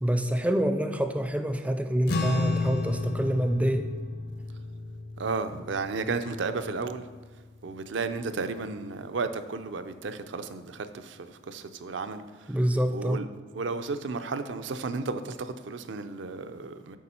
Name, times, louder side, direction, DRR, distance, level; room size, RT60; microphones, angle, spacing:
voice 1, 0.0-3.9 12.5-13.3, equal, 5° right, 7 dB, 0.4 m, -26 dB
sound 1, 2.0-8.7, left 3 dB, 55° left, 0.7 m, -34 dB
voice 2, 5.2-7.1 7.6-12.6 12.9-13.3 13.5-17.0, right 4 dB, 75° right, 9 dB, 0.5 m, -33 dB
8.3 x 5.4 x 4.3 m, 1.3 s
head